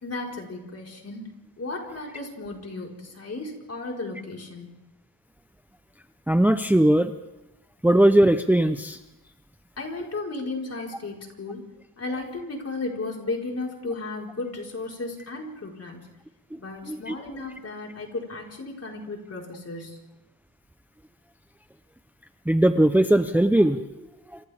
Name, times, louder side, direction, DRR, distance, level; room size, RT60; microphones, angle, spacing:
voice 1, 0.0-1.3 1.6-4.7 9.8-11.6 12.0-16.1 16.6-20.0, left 3 dB, 40° left, -1 dB, 4.8 m, -34 dB
voice 2, 6.3-7.1 7.8-9.0 16.5-16.6 16.9-17.1 22.5-23.9 24.3-24.4, right 1 dB, 5° right, 9 dB, 0.7 m, -19 dB
27.5 x 26.0 x 3.6 m, 0.95 s
wide cardioid pair, 125°, 36 cm